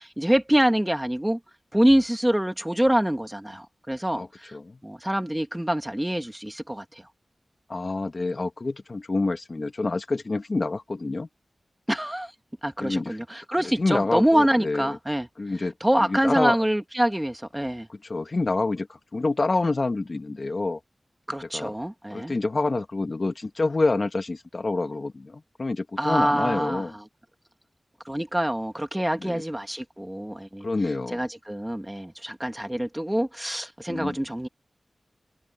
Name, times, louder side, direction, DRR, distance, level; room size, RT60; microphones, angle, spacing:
voice 1, 0.0-1.4 1.7-4.6 4.8-7.1 11.9-12.3 12.6-15.3 15.8-17.9 21.3-22.3 26.0-27.1 28.0-30.7 31.1-34.5, right 1 dB, 10° right, 2.4 m, -25 dB
voice 2, 4.1-4.8 7.7-11.3 12.8-13.2 13.8-15.0 15.4-16.6 17.9-20.8 21.5-21.7 22.1-26.9 29.2-29.4 30.6-31.2 33.9-34.2, left 3 dB, 55° left, 1.8 m, -27 dB
open air
wide cardioid pair, 55°, 0 cm